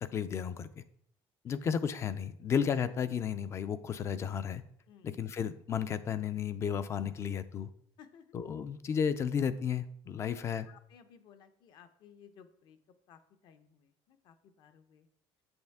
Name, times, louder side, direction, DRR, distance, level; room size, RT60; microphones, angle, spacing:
voice 1, 0.0-0.7 1.4-4.6 5.0-7.7 8.3-10.7, left 7 dB, 25° left, 13 dB, 0.4 m, -33 dB
voice 2, 8.0-8.3 10.2-10.4 10.7-12.8 13.1-15.1, left 7 dB, 50° left, 10 dB, 0.8 m, -58 dB
8.0 x 7.9 x 3.5 m, 0.67 s
cardioid pair, 180°, 10 cm